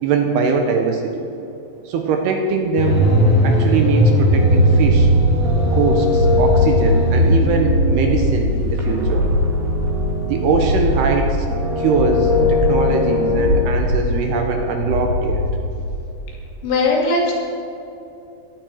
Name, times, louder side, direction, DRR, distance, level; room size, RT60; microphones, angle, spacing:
voice 1, 0.0-1.3 1.9-3.1 3.4-5.1 5.7-9.3 10.2-11.5 11.8-15.4, right 5 dB, 75° right, 3 dB, 2.8 m, -21 dB
sound 1, 2.8-12.6 12.9-13.0, equal, 50° left, 1.8 m, -19 dB
sound 2, 4.3-11.0 11.4-13.6, left 3 dB, 40° right, 1.2 m, -23 dB
sound 3, 4.8-16.1, left 1 dB, 35° left, 3.1 m, -22 dB
voice 2, 16.6-17.3, left 2 dB, 80° left, -2 dB, 4.9 m, -18 dB
18.0 x 13.0 x 4.7 m, 2.8 s
omnidirectional pair, 5.2 m